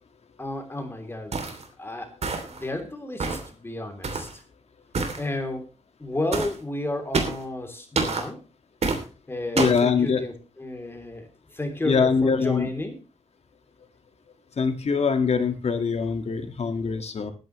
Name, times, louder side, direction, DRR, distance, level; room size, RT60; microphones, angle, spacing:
voice 1, 0.4-1.5 1.8-2.1 2.5-4.3 5.2-5.6 6.0-8.4 9.3-13.0, left 2 dB, 20° left, 4 dB, 3.3 m, -32 dB
sound 1, 1.3-1.6 2.2-2.6 3.2-3.5 4.0-4.3 4.9-5.2 6.3-6.6 7.1-7.4 8.0-8.3 8.8-9.0 9.6-9.8, right 4 dB, 70° right, 3.0 m, -27 dB
voice 2, 9.6-10.2 11.8-12.7 14.6-17.3, left 5 dB, 65° left, 7 dB, 1.9 m, -23 dB
19.5 x 10.5 x 3.2 m, 0.31 s
wide cardioid pair, 145°, 12 cm